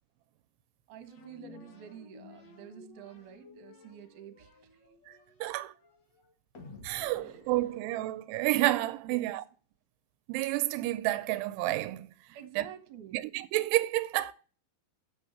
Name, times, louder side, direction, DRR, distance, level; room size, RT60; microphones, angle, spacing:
voice 1, 0.9-4.5 5.5-5.7 7.2-7.4 9.0-9.3 12.3-13.2, right 9 dB, 65° right, 2.2 m, -49 dB
sound 1, 1.1-8.6, left 2 dB, 75° left, 1.0 m, -54 dB
voice 2, 5.4-5.7 6.8-9.4 10.3-12.1 12.6-12.7 13.1-14.3, right 17 dB, 85° right, 2.6 m, -30 dB
7.0 x 6.2 x 6.6 m
omnidirectional pair, 4.7 m